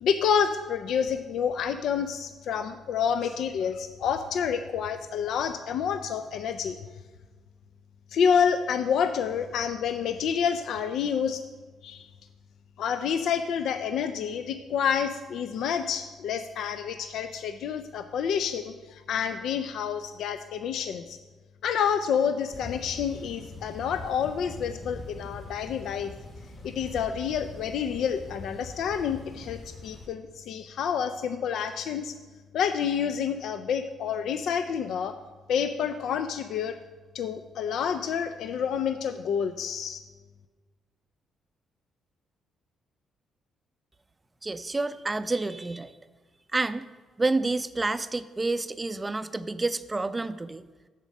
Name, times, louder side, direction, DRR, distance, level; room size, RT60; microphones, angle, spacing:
voice 1, 0.0-6.8 8.1-11.4 11.8-12.1 12.8-21.2 21.6-26.1 26.6-32.1 32.5-35.1 35.5-36.8 37.1-40.0, left 7 dB, 75° left, 9 dB, 0.4 m, -28 dB
sound 1, 22.5-30.1, left 2 dB, 50° left, 2.2 m, -43 dB
voice 2, 44.4-45.9 46.5-46.8 47.2-50.6, right 3 dB, 20° right, 13 dB, 0.4 m, -29 dB
7.3 x 7.3 x 5.3 m, 1.4 s
cardioid pair, 90°, 0 cm